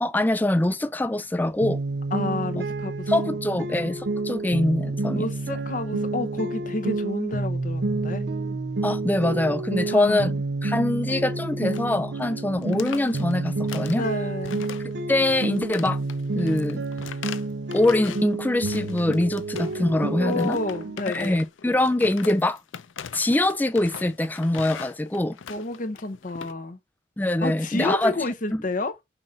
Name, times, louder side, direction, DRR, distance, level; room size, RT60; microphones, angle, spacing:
voice 1, 0.0-1.8 3.1-5.2 8.8-10.3 10.6-14.1 15.1-16.0 16.4-16.8 17.7-20.6 21.1-22.6 23.1-25.4 27.2-28.1 28.5-28.6, left 1 dB, 10° left, 0.3 m, -24 dB
sound 1, 1.6-21.0, right 2 dB, 65° right, 0.6 m, -29 dB
voice 2, 2.1-3.1 5.1-8.2 9.9-10.4 10.9-11.0 11.5-11.8 13.9-14.7 20.2-21.5 25.5-26.8 27.4-28.9, left 2 dB, 45° left, 0.8 m, -30 dB
sound 2, 11.7-12.0 12.2-12.4 12.6-14.1 14.4-15.0 15.3-18.3 18.6-19.9 20.3-26.5, left 7 dB, 90° left, 0.5 m, -41 dB
5.8 x 2.5 x 3.7 m
head